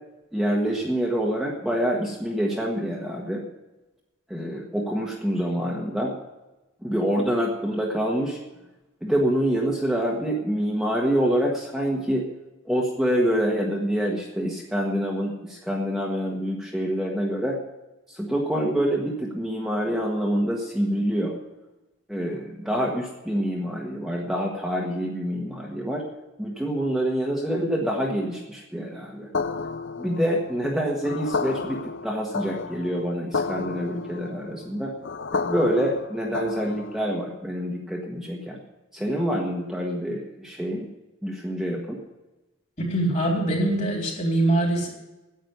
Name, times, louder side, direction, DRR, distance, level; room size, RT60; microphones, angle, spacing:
voice 1, 0.3-3.4 4.3-6.1 6.8-8.4 9.0-12.2 12.6-17.6 18.1-21.3 22.1-26.0 26.4-29.3 30.0-34.9 35.3-38.6 38.9-40.9 41.2-42.0, equal, ahead, -3 dB, 1.5 m, -26 dB
sound 1, 29.3-37.1, left 4 dB, 65° left, 0.6 m, -32 dB
voice 2, 42.8-44.9, right 1 dB, 35° left, 0 dB, 3.5 m, -23 dB
10.5 x 8.8 x 9.3 m, 1.0 s
head